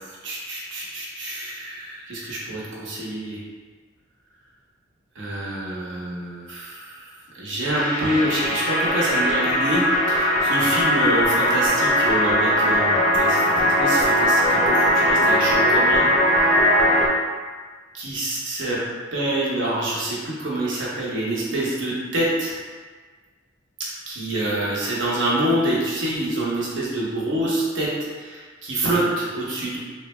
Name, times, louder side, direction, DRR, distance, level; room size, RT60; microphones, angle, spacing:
voice 1, 0.2-3.4 5.2-7.0 7.3-16.0 16.4-16.5 17.9-18.8 19.1-22.5 24.1-27.9 28.2-29.8, right 1 dB, 70° right, -5 dB, 0.8 m, -26 dB
sound 1, 7.7-17.1, equal, 35° left, 0.4 m, -19 dB
3.8 x 2.2 x 3.0 m, 1.5 s
head